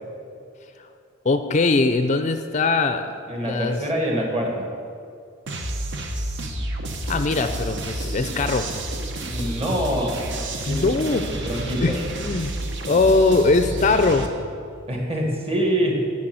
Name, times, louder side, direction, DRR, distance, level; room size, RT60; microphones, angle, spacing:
voice 1, 1.2-3.1 3.4-3.8 7.1-8.7 10.7-11.2 11.8-12.5 12.9-14.3, left 3 dB, 35° left, 8 dB, 0.4 m, -21 dB
voice 2, 3.3-4.7 9.3-10.2 10.6-10.9 11.2-12.0 14.9-16.1, right 1 dB, 30° right, 0 dB, 1.8 m, -25 dB
sound 1, 5.5-14.3, right 1 dB, 60° right, 1.0 m, -30 dB
10.0 x 6.2 x 7.7 m, 2.5 s
head